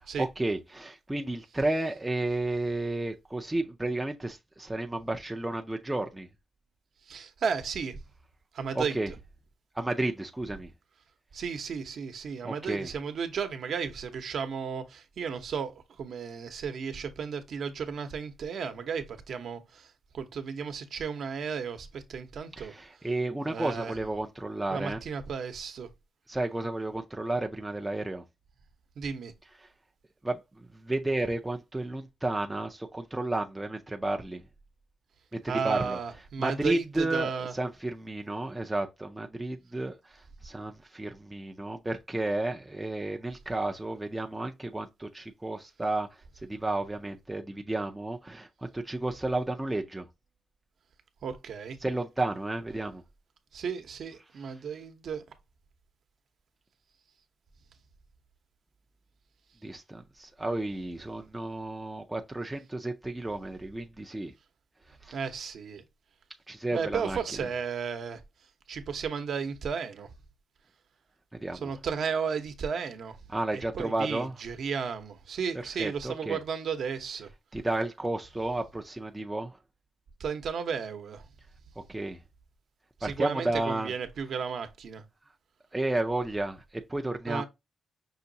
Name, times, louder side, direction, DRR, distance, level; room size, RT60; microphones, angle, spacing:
voice 1, 0.2-6.3 8.7-9.1 9.7-10.7 12.4-12.9 22.6-25.0 26.3-28.2 30.2-34.4 35.3-36.0 36.4-46.1 46.4-50.1 51.8-53.0 59.6-64.3 65.0-65.2 66.5-67.2 71.3-71.7 73.3-74.3 75.8-76.4 77.5-79.6 81.9-82.2 83.0-83.9 85.7-87.4, right 2 dB, 10° right, 0.4 m, -32 dB
voice 2, 7.1-8.0 8.5-9.1 11.3-22.7 23.5-23.9 24.7-25.9 29.0-29.3 35.5-37.5 51.2-51.8 53.5-55.3 65.1-65.8 66.7-68.2 68.7-70.1 71.6-73.2 73.7-77.3 80.2-81.3 83.0-85.0 87.3-87.4, right 6 dB, 60° right, 0.8 m, -34 dB
5.7 x 3.0 x 2.6 m
wide cardioid pair, 170°, 0 cm